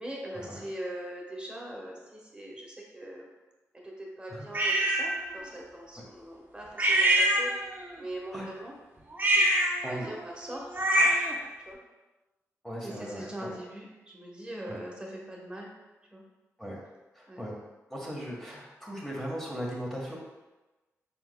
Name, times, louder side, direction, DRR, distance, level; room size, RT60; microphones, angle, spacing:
voice 1, 0.0-3.3 3.7-8.7 9.3-9.5 9.8-11.3 11.6-11.8 12.8-15.7 16.1-16.2 17.3-17.4, right 1 dB, 15° right, -2 dB, 1.2 m, -41 dB
sound 1, 4.5-5.1 6.8-7.9 9.1-11.4, right 1 dB, 35° right, 0.8 m, -25 dB
voice 2, 12.6-13.5 14.7-14.8 16.6-16.8 17.1-17.5 17.9-20.2, equal, 5° left, -4 dB, 1.3 m, -38 dB
4.4 x 3.9 x 2.3 m, 1.1 s
cardioid pair, 50°, 6 cm